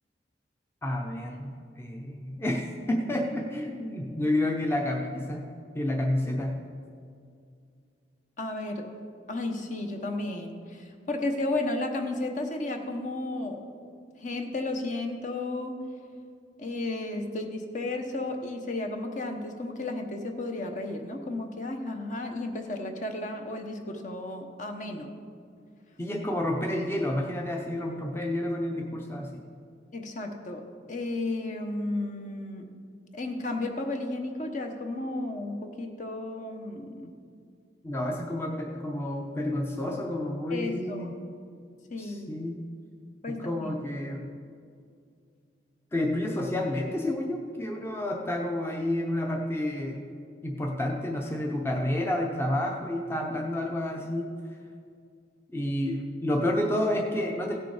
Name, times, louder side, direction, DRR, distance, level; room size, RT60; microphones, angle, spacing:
voice 1, 0.8-5.5 5.7-6.6 26.0-29.4 37.8-41.1 42.0-42.6 43.3-44.3 45.9-50.1 50.4-54.3 55.5-57.6, left 1 dB, 15° left, 1 dB, 0.7 m, -30 dB
voice 2, 8.4-8.9 9.3-13.6 14.2-15.7 16.6-25.1 29.9-30.6 30.9-32.6 33.1-37.1 40.5-41.1 41.9-42.3 43.2-43.7, left 2 dB, 45° left, 4 dB, 1.0 m, -33 dB
16.0 x 6.7 x 4.9 m, 2.3 s
head